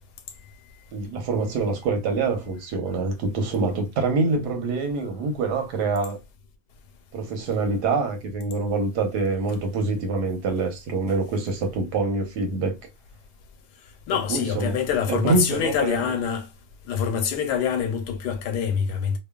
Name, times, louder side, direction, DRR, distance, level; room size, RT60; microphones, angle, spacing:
voice 1, 0.9-6.2 7.1-12.7 14.3-14.8 15.1-15.9, right 3 dB, 90° right, 1.3 m, -25 dB
voice 2, 14.1-16.5 16.9-19.2, left 7 dB, 85° left, 1.2 m, -25 dB
2.9 x 2.2 x 2.2 m
omnidirectional pair, 1.7 m